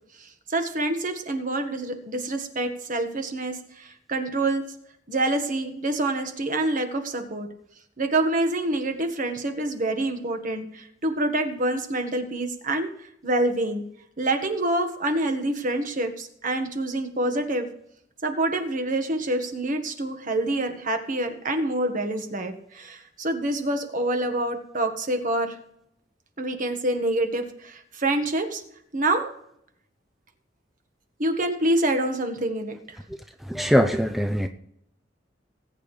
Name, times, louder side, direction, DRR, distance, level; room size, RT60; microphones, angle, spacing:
voice 1, 0.2-4.6 5.1-7.5 8.0-13.8 14.2-17.7 18.2-25.6 26.4-28.6 28.9-29.3 31.2-33.0, right 1 dB, 45° right, 6 dB, 1.5 m, -26 dB
voice 2, 33.5-34.5, equal, ahead, 6 dB, 0.5 m, -21 dB
19.5 x 8.7 x 3.3 m, 0.73 s
head